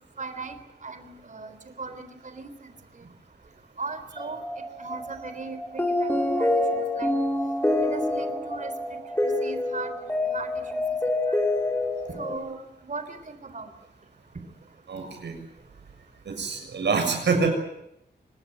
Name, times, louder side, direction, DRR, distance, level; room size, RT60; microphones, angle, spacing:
voice 1, 0.2-0.6 0.8-2.5 3.8-4.4 4.8-5.8 6.2-7.1 7.8-8.7 9.2-9.9 10.3-10.5 12.1-12.6 12.8-13.7, right 4 dB, 45° right, 10 dB, 3.8 m, -37 dB
sound 1, 4.2-12.4, left 1 dB, 10° left, 5.4 m, -27 dB
voice 2, 14.9-15.4 16.2-17.5, right 4 dB, 90° right, 5 dB, 6.9 m, -26 dB
26.5 x 19.5 x 9.2 m, 0.82 s
wide cardioid pair, 105°, 18 cm